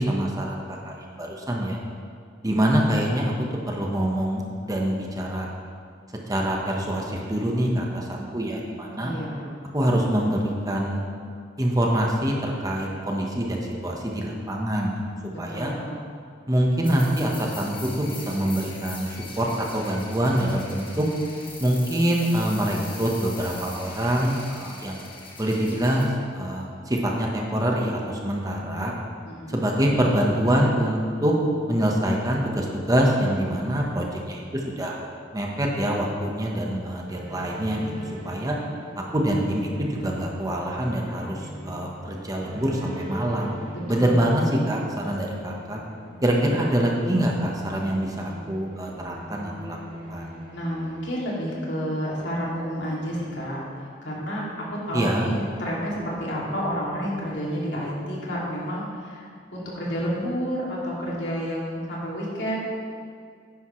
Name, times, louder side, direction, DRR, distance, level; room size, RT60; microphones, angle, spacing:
voice 1, 0.0-1.8 2.4-3.3 3.7-5.5 6.3-9.1 9.7-11.0 11.6-14.9 15.4-15.7 16.5-21.0 21.6-25.1 25.4-28.9 29.5-31.3 31.7-35.0 35.3-38.6 39.1-43.5 43.9-45.8 46.2-49.8 50.1-50.3 54.9-55.3, right 1 dB, 20° right, -1 dB, 1.2 m, -25 dB
voice 2, 8.9-9.5 15.5-15.9 29.2-29.7 43.7-44.5 50.5-53.6 54.0-62.6, equal, 85° left, -5 dB, 2.5 m, -30 dB
sound 1, 16.8-26.0, left 3 dB, 30° left, 1.4 m, -41 dB
sound 2, 36.7-51.9, right 1 dB, 50° right, 2.0 m, -41 dB
10.5 x 10.0 x 3.2 m, 2.2 s
head